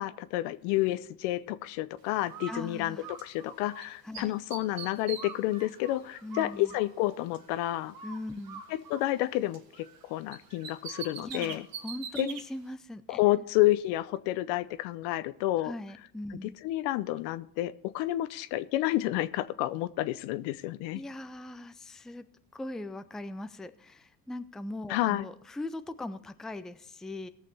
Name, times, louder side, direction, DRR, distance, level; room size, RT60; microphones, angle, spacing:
voice 1, 0.0-7.9 8.7-11.7 12.2-12.3 13.1-15.7 16.3-21.0 24.9-25.3, left 16 dB, 70° left, 15 dB, 0.7 m, -30 dB
Bird, 2.3-3.8 4.1-7.6 7.9-10.0 10.3-12.4, right 6 dB, 50° right, 1.6 m, -44 dB
voice 2, 2.5-3.1 4.0-4.3 6.2-6.7 8.0-8.6 11.2-13.2 15.6-16.6 20.9-22.2 22.5-27.3, left 1 dB, ahead, 11 dB, 0.4 m, -40 dB
17.5 x 6.7 x 4.1 m, 0.70 s
hypercardioid pair, 75°, 45 cm